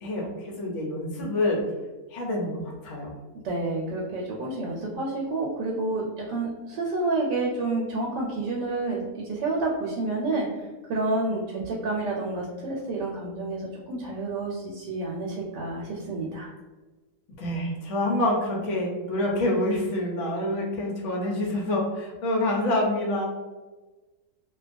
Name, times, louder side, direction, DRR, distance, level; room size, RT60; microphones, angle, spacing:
voice 1, 0.0-1.6 2.1-3.1 11.3-11.7 17.4-23.3, left 1 dB, 70° left, -2 dB, 0.7 m, -27 dB
voice 2, 3.4-16.5, right 2 dB, 80° right, -3 dB, 1.2 m, -29 dB
2.7 x 2.2 x 2.4 m, 1.2 s
omnidirectional pair, 1.9 m